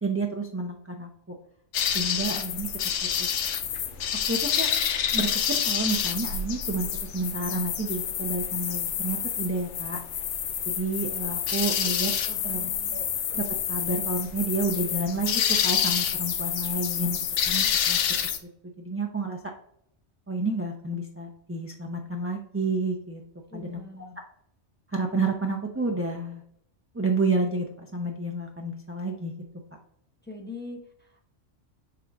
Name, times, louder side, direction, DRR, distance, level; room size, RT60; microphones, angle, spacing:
voice 1, 0.0-1.4 1.9-2.7 3.2-3.3 4.3-4.7 5.1-6.9 7.1-10.0 10.6-12.1 12.4-13.0 13.3-17.2 17.5-18.0 18.8-19.4 20.3-23.2 23.5-23.8 24.9-26.4 26.9-29.3, right 3 dB, 20° right, 0 dB, 0.3 m, -30 dB
sound 1, 1.7-18.4, left 8 dB, 75° left, 0.9 m, -28 dB
voice 2, 12.3-13.0 23.5-24.2 30.2-31.2, left 2 dB, 10° left, 1 dB, 0.7 m, -43 dB
7.2 x 3.8 x 3.4 m, 0.70 s
omnidirectional pair, 1.3 m